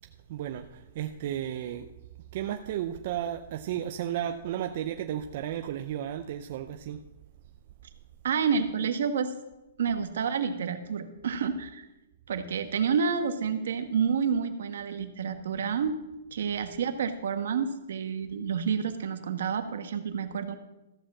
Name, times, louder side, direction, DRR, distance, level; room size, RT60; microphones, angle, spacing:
voice 1, 0.3-1.9 2.3-7.0, right 11 dB, 50° right, 6 dB, 0.5 m, -33 dB
voice 2, 8.2-9.3 9.8-11.9 12.3-15.9 16.3-20.5, right 6 dB, 75° right, 8 dB, 1.2 m, -29 dB
14.0 x 5.2 x 7.3 m, 0.96 s
hypercardioid pair, 155°, 0 cm